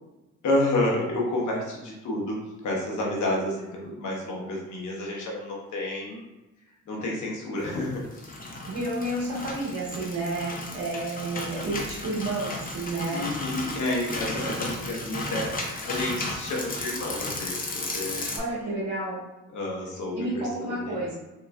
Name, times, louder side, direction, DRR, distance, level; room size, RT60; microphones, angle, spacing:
voice 1, 0.4-6.3 6.9-8.2 13.1-18.3 19.5-21.0, left 1 dB, 70° left, -2 dB, 1.0 m, -30 dB
sound 1, 7.9-18.4, left 2 dB, 30° left, 0.7 m, -34 dB
voice 2, 8.5-13.3 18.3-19.2 20.1-21.1, right 2 dB, 65° right, -6 dB, 1.2 m, -31 dB
3.5 x 2.9 x 2.2 m, 1.0 s
cardioid pair, 90°, 30 cm